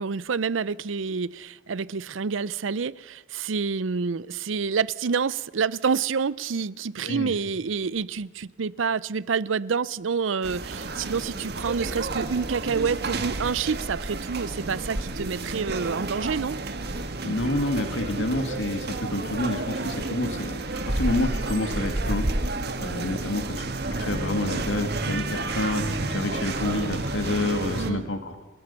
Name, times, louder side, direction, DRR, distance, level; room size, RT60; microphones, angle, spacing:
voice 1, 0.0-16.6 27.8-28.0, right 5 dB, 80° right, 0.6 m, -28 dB
voice 2, 7.0-7.3 17.2-20.6 20.8-28.4, left 1 dB, 75° left, 2.0 m, -28 dB
sound 1, 10.4-27.9, right 2 dB, 55° right, 1.6 m, -31 dB
30.0 x 14.0 x 6.9 m
head